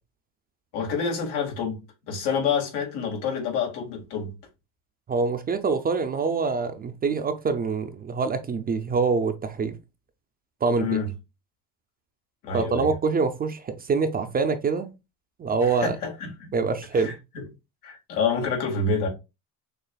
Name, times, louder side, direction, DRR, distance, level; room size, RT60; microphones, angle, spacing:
voice 1, 0.7-4.3 10.8-11.1 12.4-12.9 15.6-16.5 16.9-17.4 17.8-19.1, left 5 dB, 85° left, 1.9 m, -28 dB
voice 2, 5.1-9.7 10.6-11.0 12.5-14.9 15.4-16.0 16.5-17.1, right 4 dB, 25° right, 0.4 m, -25 dB
6.5 x 2.5 x 2.2 m
cardioid pair, 120°, 38 cm